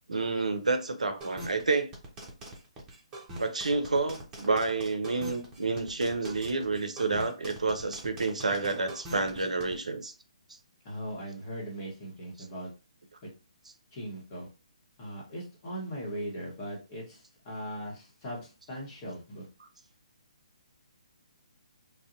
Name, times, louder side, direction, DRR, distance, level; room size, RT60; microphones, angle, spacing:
voice 1, 0.1-1.9 3.4-10.1, right 3 dB, 75° right, 0.4 m, -29 dB
sound 1, 1.2-9.7, right 1 dB, 15° right, 0.7 m, -43 dB
voice 2, 10.8-12.7 13.9-14.5 15.0-19.5, equal, 30° left, 1.1 m, -39 dB
2.5 x 2.1 x 2.5 m
figure-of-eight pair, 140°, 4 cm